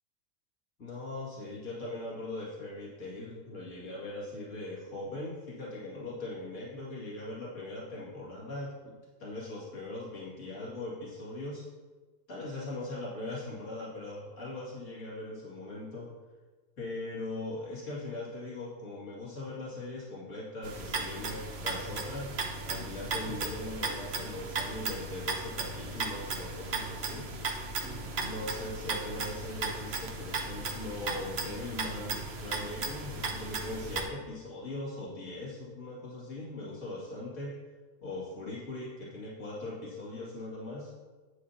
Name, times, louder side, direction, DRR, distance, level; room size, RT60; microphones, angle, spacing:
voice 1, 0.8-11.7 12.3-16.1 16.8-22.3 22.7-27.3 28.2-37.6 38.0-40.9, left 2 dB, 60° left, -6 dB, 2.6 m, -40 dB
sound 1, 20.6-34.0, right 3 dB, 50° right, 1.1 m, -36 dB
9.8 x 8.8 x 2.8 m, 1.3 s
omnidirectional pair, 1.5 m